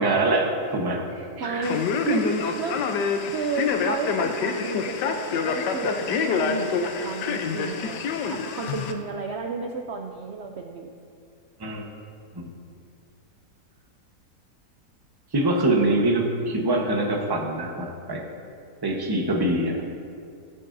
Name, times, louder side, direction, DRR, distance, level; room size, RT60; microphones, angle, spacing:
voice 1, 0.0-1.7 11.6-11.9 12.3-12.5 15.3-18.2 18.8-19.7, right 2 dB, 20° right, 0 dB, 0.7 m, -24 dB
voice 2, 1.4-2.9 3.3-8.0 8.3-10.9, right 5 dB, 75° right, 3 dB, 0.6 m, -32 dB
Male speech man speaking, 1.6-8.9, left 5 dB, 90° left, 1.3 m, -26 dB
16.5 x 7.9 x 2.6 m, 2.4 s
omnidirectional pair, 1.8 m